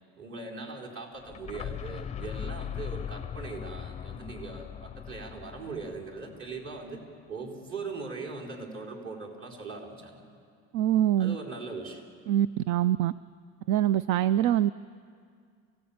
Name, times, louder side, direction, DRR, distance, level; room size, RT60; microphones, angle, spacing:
voice 1, 0.2-10.3 11.2-12.0, right 4 dB, 45° right, -1 dB, 4.6 m, -40 dB
sound 1, 1.2-7.0, left 9 dB, 20° left, 0.5 m, -40 dB
voice 2, 10.7-11.4 12.3-13.1 13.7-14.7, right 12 dB, 70° right, 16 dB, 0.5 m, -24 dB
27.0 x 17.0 x 8.7 m, 2.2 s
cardioid pair, 135°, 30 cm